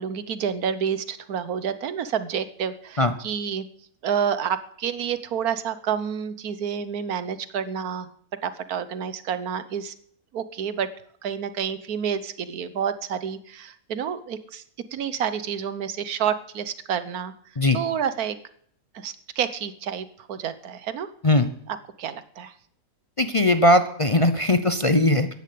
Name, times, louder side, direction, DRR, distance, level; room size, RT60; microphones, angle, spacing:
voice 1, 0.0-3.7 4.0-8.1 8.4-9.9 10.3-10.9 11.2-14.6 14.9-17.3 17.7-18.4 18.9-21.1 21.7-22.5, right 8 dB, 90° right, 13 dB, 1.5 m, -29 dB
voice 2, 23.2-25.3, left 1 dB, 30° left, 9 dB, 0.6 m, -19 dB
15.5 x 10.5 x 8.5 m, 0.64 s
omnidirectional pair, 1.5 m